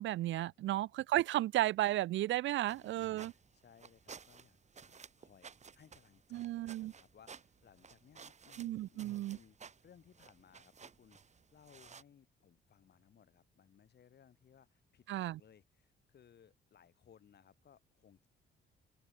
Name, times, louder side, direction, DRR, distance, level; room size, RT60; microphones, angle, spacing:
voice 1, 0.0-3.3 6.3-6.9 8.6-9.4 15.1-15.4, right 15 dB, 75° right, 0.5 m, -34 dB
voice 2, 0.6-0.9 2.6-9.6 9.8-18.3, left 8 dB, 55° left, 5.1 m, -64 dB
sound 1, 2.6-12.0, right 6 dB, 35° right, 1.4 m, -57 dB
open air
cardioid pair, 90°, 20 cm